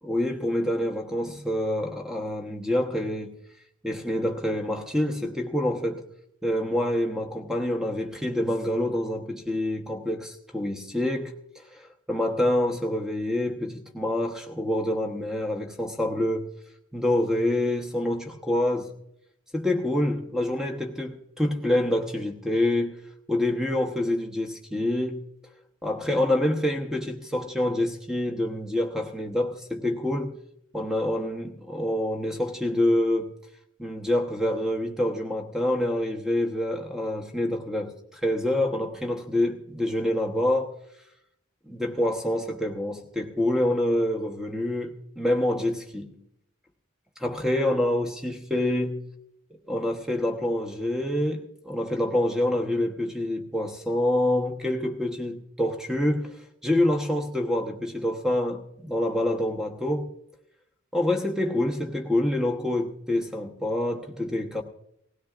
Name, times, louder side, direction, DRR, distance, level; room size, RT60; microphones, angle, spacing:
voice 1, 0.0-3.4 3.8-6.0 6.4-11.3 11.7-16.5 16.9-18.9 19.5-23.0 23.3-25.3 25.8-30.4 30.7-33.3 33.8-40.8 41.7-46.2 47.2-49.1 49.7-60.1 60.9-64.6, left 1 dB, 5° right, 1.0 m, -26 dB
19.0 x 16.0 x 2.5 m
head